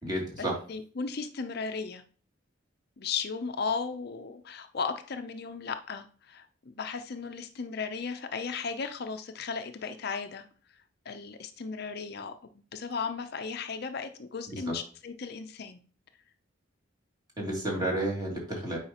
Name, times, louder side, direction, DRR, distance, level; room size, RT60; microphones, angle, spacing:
voice 1, 0.0-0.5 14.5-14.7 17.4-18.8, right 1 dB, 20° right, -3 dB, 2.5 m, -31 dB
voice 2, 0.7-2.0 3.0-10.4 11.1-12.3 12.7-15.8, left 5 dB, 50° left, 8 dB, 0.5 m, -35 dB
8.7 x 4.8 x 2.9 m, 0.41 s
head